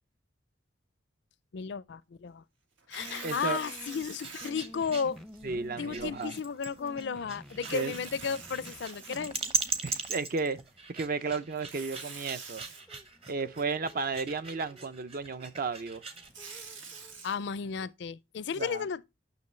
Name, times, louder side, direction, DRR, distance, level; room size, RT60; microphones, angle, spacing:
voice 1, 1.5-2.4 2.9-5.2 5.8-9.3 17.2-19.0, left 6 dB, 60° left, 0.4 m, -34 dB
Tearing, 2.8-4.5 5.2-5.3 7.5-9.6 11.5-12.8 15.9-17.3, right 5 dB, 80° right, 1.7 m, -45 dB
sound 1, 3.0-17.9, equal, ahead, 0.5 m, -52 dB
voice 2, 3.2-3.6 5.4-6.4 7.7-7.9 9.8-10.6 10.9-12.7 13.3-16.0 18.6-18.9, right 4 dB, 50° right, 0.5 m, -33 dB
sound 2, 3.7-16.3, right 4 dB, 30° right, 1.0 m, -39 dB
9.5 x 6.2 x 3.1 m
head